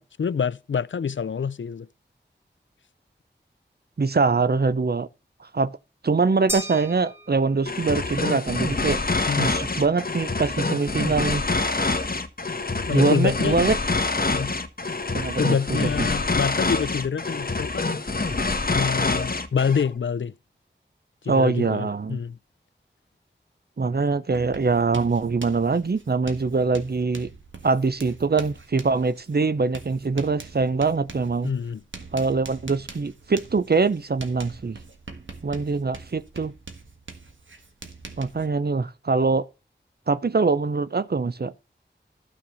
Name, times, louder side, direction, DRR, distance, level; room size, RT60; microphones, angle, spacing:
voice 1, 0.0-1.9 9.3-9.5 12.9-13.6 14.3-14.5 15.4-17.9 18.7-20.3 21.2-22.4 31.4-31.8, left 6 dB, 80° left, 0.5 m, -26 dB
voice 2, 4.0-5.1 5.4-5.8 6.0-9.0 9.4-11.5 12.9-13.8 15.1-15.9 21.3-22.2 23.8-27.3 27.6-31.5 32.1-34.8 35.4-36.5 38.2-39.5 40.1-41.6, right 4 dB, 55° right, 0.7 m, -23 dB
sound 1, 6.5-7.9, equal, 10° right, 2.1 m, -35 dB
sound 2, 7.7-19.9, left 3 dB, 50° left, 1.2 m, -26 dB
Writing, 24.3-38.5, right 3 dB, 85° right, 1.5 m, -43 dB
12.5 x 4.5 x 7.0 m
wide cardioid pair, 50°, 19 cm